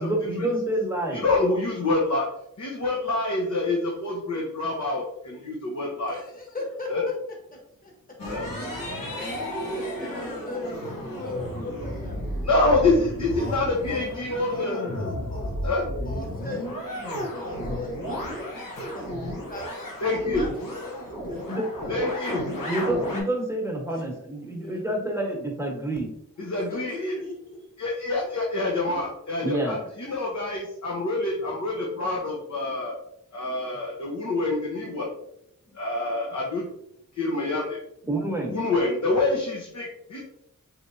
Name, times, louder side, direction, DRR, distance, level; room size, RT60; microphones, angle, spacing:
voice 1, 0.0-1.2 9.3-9.5 21.5-21.6 22.7-26.1 29.4-29.7 38.1-38.6, right 1 dB, 10° right, -1 dB, 1.1 m, -28 dB
voice 2, 1.1-2.3 2.6-6.2 6.9-7.0 8.3-8.4 12.4-14.9 15.6-15.8 20.0-20.5 21.9-22.5 26.4-27.1 27.8-33.0 33.3-35.1 35.7-36.7 37.2-37.8 38.5-40.2, left 2 dB, 55° left, -3 dB, 0.9 m, -26 dB
voice 3, 6.1-6.9 7.8-7.9 8.2-9.0 9.7-10.7 11.1-12.2 13.4-13.6 13.9-14.0 14.2-15.8 16.0-16.7 17.3-19.9 20.4-22.0 22.6-22.8 23.9-24.0 24.6-24.8 26.5-27.3 28.2-28.3, left 1 dB, 25° left, -1 dB, 1.2 m, -38 dB
sound 1, 8.2-23.2, equal, 80° left, 1.1 m, -33 dB
4.2 x 3.2 x 2.7 m, 0.77 s
wide cardioid pair, 70°, 33 cm